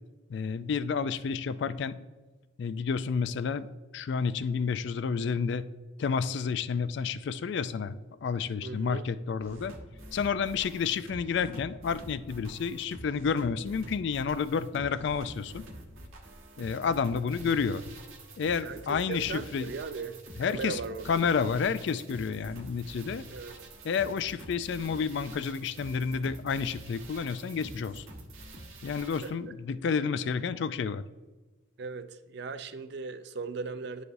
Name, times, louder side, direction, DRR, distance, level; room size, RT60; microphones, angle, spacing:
voice 1, 0.3-1.9 2.6-3.7 3.9-5.7 6.0-9.7 10.1-15.6 16.6-17.8 18.4-19.7 20.4-20.8 21.1-23.2 23.8-28.1 28.8-31.0, left 6 dB, 60° left, 0.3 m, -30 dB
voice 2, 8.6-9.0 9.5-9.6 18.6-21.2 23.3-23.6 29.2-29.3 31.8-34.0, right 4 dB, 55° right, 0.4 m, -38 dB
sound 1, 9.4-29.3, right 1 dB, 80° right, 1.1 m, -47 dB
11.0 x 4.9 x 2.6 m
head